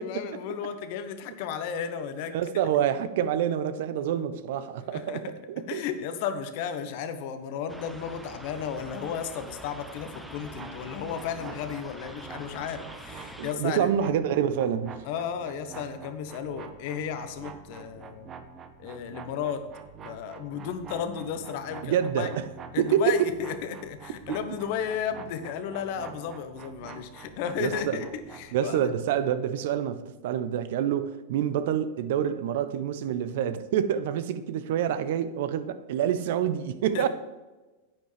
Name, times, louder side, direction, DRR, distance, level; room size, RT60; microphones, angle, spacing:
voice 1, 0.0-2.3 4.9-5.3 5.7-13.9 15.1-18.3 18.8-19.6 20.0-22.3 22.7-28.9 36.9-37.1, left 7 dB, 55° left, 1.0 m, -34 dB
voice 2, 2.3-5.8 13.4-15.0 21.8-22.5 22.8-23.3 27.6-28.0 28.5-37.1, right 9 dB, 60° right, 0.7 m, -27 dB
sound 1, 7.7-13.5, right 1 dB, 5° right, 1.0 m, -45 dB
sound 2, 10.4-28.5, right 6 dB, 30° right, 1.0 m, -46 dB
9.7 x 9.3 x 3.4 m
hypercardioid pair, 95°, 0 cm